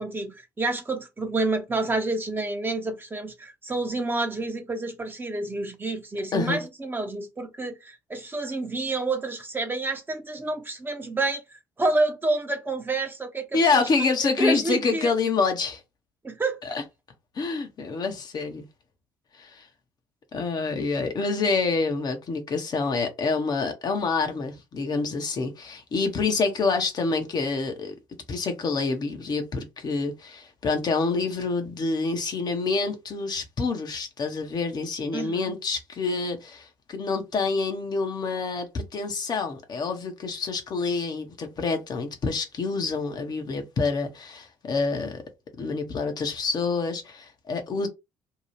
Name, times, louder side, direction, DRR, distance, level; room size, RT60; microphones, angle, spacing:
voice 1, 0.0-13.8 14.2-15.1 16.2-16.8 35.1-35.5, right 2 dB, 20° right, 0.9 m, -29 dB
voice 2, 13.5-15.8 16.6-16.8 17.3-18.7 19.4-19.7 20.3-27.9 28.3-45.2 45.6-47.9, left 4 dB, 45° left, 0.8 m, -27 dB
2.7 x 2.3 x 3.1 m
hypercardioid pair, 50°, 10 cm